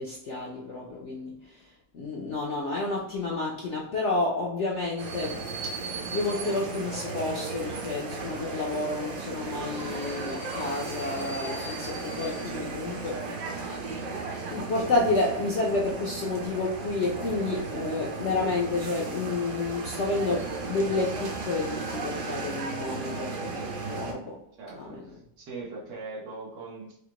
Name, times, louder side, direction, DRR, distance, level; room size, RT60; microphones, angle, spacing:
voice 1, 0.0-13.2 14.0-14.1 14.5-24.4 24.7-25.0, left 3 dB, 65° left, -3 dB, 0.6 m, -30 dB
sound 1, 5.0-24.1, right 3 dB, 70° right, 1.3 m, -35 dB
voice 2, 12.2-12.6 13.1-13.6 24.6-27.0, right 3 dB, 90° right, -3 dB, 1.8 m, -41 dB
4.8 x 2.1 x 2.9 m, 0.73 s
omnidirectional pair, 1.9 m